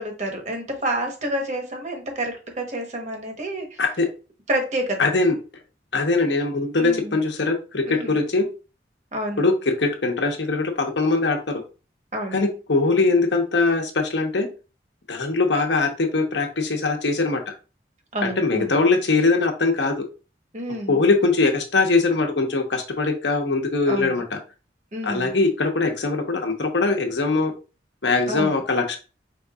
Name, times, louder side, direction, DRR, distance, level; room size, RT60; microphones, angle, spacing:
voice 1, 0.0-3.8 4.5-5.0 6.8-7.1 7.8-8.2 9.1-9.4 12.1-12.4 18.1-18.7 20.5-21.0 23.9-24.2 24.9-25.3 28.3-28.6, right 1 dB, 40° right, 3 dB, 1.0 m, -29 dB
voice 2, 5.0-5.4 5.9-8.5 9.4-11.6 12.3-14.5 15.1-17.5 18.2-20.0 20.9-24.4 25.0-27.5 28.0-29.0, left 3 dB, 85° left, 4 dB, 1.0 m, -21 dB
5.1 x 3.8 x 2.3 m, 0.33 s
head